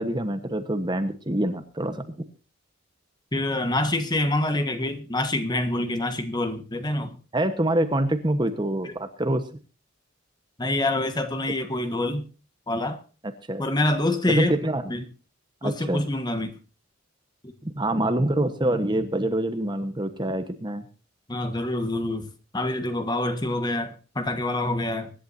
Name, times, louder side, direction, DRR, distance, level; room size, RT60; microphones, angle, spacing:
voice 1, 0.0-2.0 7.3-9.4 13.5-13.7 14.3-14.8 15.6-16.0 17.8-20.9, right 1 dB, 20° right, 1.2 m, -25 dB
voice 2, 3.3-7.1 8.8-8.9 10.6-12.2 12.7-13.0 13.6-14.6 14.9-15.0 15.6-16.6 21.3-25.1, left 1 dB, 20° left, 1.5 m, -26 dB
24.5 x 11.5 x 2.7 m
head